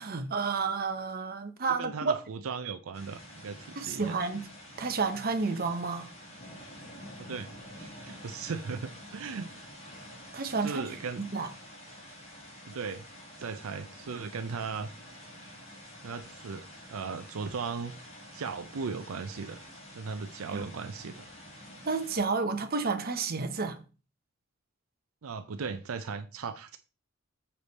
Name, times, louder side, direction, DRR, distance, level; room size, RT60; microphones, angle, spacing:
voice 1, 0.0-2.1 3.8-4.5 4.8-6.1 10.3-10.8 11.2-11.5 20.5-20.6 21.9-23.8, right 4 dB, 45° right, 0.9 m, -30 dB
voice 2, 1.8-4.1 7.2-9.5 10.6-11.3 12.7-13.0 13.4-14.9 16.0-19.6 19.9-21.3 25.2-26.8, right 5 dB, 75° right, 0.5 m, -37 dB
sound 1, 2.9-22.2, equal, 30° left, 2.7 m, -48 dB
6.7 x 4.9 x 4.1 m
head